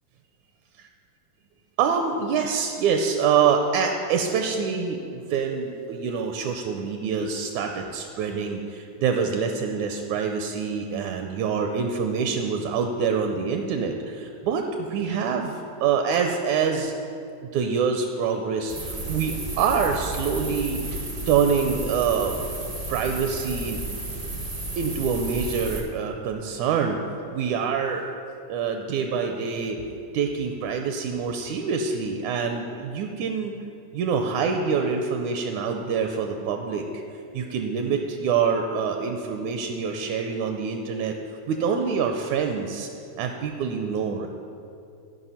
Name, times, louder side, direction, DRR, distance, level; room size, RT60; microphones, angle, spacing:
voice 1, 1.8-16.9 17.4-22.3 22.9-23.8 24.8-27.0 27.3-28.1 28.5-29.9 30.1-33.5 33.9-36.8 37.3-41.2 41.5-42.9 43.2-44.3, right 6 dB, 80° right, 4 dB, 1.8 m, -26 dB
sound 1, 18.7-25.8, right 2 dB, 40° right, 0.5 m, -33 dB
13.5 x 5.4 x 5.6 m, 2.7 s
omnidirectional pair, 3.8 m